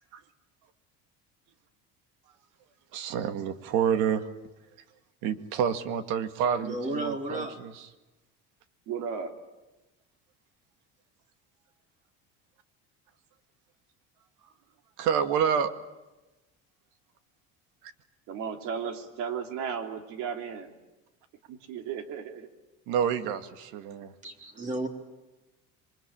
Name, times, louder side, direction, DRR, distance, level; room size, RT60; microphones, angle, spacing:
voice 1, 2.9-4.2 5.2-7.4 15.0-15.7 22.9-24.1, right 8 dB, 85° right, 9 dB, 2.1 m, -28 dB
voice 2, 6.6-7.6 24.2-24.9, right 2 dB, 25° right, 4 dB, 3.5 m, -33 dB
voice 3, 8.9-9.4 18.3-20.7 21.5-22.5, right 7 dB, 70° right, 6 dB, 3.3 m, -35 dB
27.5 x 24.0 x 8.8 m, 1.0 s
cardioid pair, 160°, 31 cm